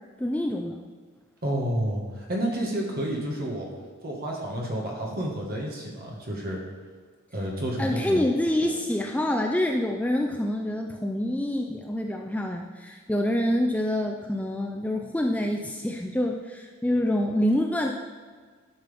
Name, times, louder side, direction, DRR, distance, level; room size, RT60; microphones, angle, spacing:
voice 1, 0.2-0.8 7.8-17.9, left 1 dB, 5° left, 2 dB, 0.4 m, -26 dB
voice 2, 1.4-3.7 4.0-6.6 7.3-8.4, right 1 dB, 45° right, -1 dB, 1.6 m, -30 dB
11.0 x 5.8 x 3.5 m, 1.5 s
head